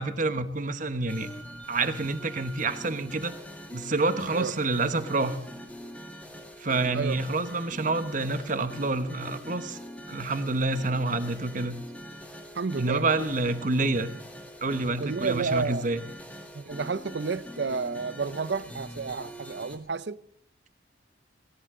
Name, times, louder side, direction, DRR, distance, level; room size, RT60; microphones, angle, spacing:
voice 1, 0.0-1.3 1.7-3.3 3.7-5.4 6.6-9.8 10.1-11.8 12.8-14.1 14.6-16.0, right 3 dB, 45° right, 1.1 m, -28 dB
sound 1, 1.1-19.8, equal, 10° left, 1.9 m, -43 dB
voice 2, 12.5-13.1 15.0-15.9 16.5-20.2, right 4 dB, 65° right, 0.6 m, -31 dB
17.5 x 17.0 x 3.8 m
head